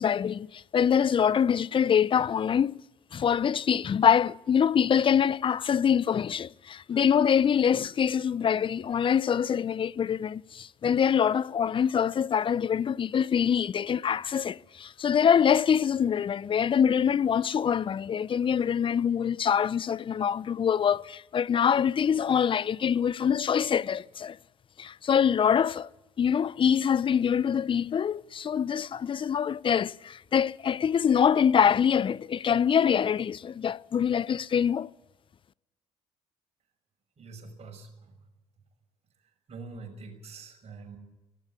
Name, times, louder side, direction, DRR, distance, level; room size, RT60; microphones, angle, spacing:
voice 1, 0.0-2.8 3.1-24.4 24.8-25.9 26.2-34.9, left 8 dB, 35° left, 0.6 m, -25 dB
voice 2, 37.2-38.1 39.5-41.0, right 4 dB, 45° right, 6.1 m, -45 dB
18.0 x 17.5 x 8.4 m
hypercardioid pair, 55°, 15 cm